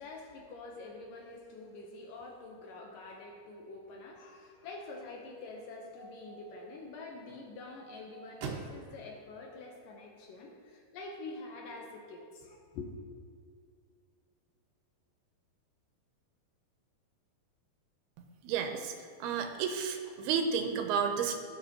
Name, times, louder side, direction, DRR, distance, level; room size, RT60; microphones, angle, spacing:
voice 1, 0.0-12.9, left 3 dB, 70° left, 1 dB, 2.3 m, -46 dB
sound 1, 4.9-11.0, right 5 dB, 70° right, 2.0 m, -49 dB
voice 2, 18.2-18.9 19.2-21.4, right 6 dB, 90° right, 5 dB, 2.7 m, -32 dB
17.5 x 6.6 x 2.9 m, 2.2 s
omnidirectional pair, 4.5 m